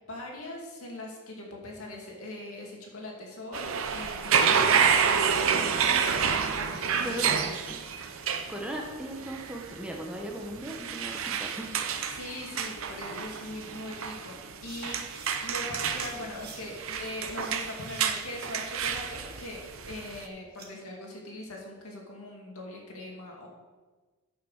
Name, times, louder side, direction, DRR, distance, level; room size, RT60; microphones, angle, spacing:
voice 1, 0.1-7.6 12.1-15.0 15.4-23.5, left 1 dB, 75° left, -1 dB, 2.3 m, -41 dB
sound 1, 3.5-20.2, right 7 dB, 65° right, 0.7 m, -29 dB
voice 2, 7.0-7.4 7.6-7.7 8.5-12.1, right 1 dB, 5° right, 0 dB, 1.0 m, -38 dB
sound 2, 7.2-8.3 9.8-10.9 11.2-11.3 12.7-12.8 13.0-13.6 14.4-15.4 15.9-16.6 17.3-18.8 19.2-20.7, right 5 dB, 45° right, 1.5 m, -51 dB
9.3 x 5.9 x 6.5 m, 1.3 s
head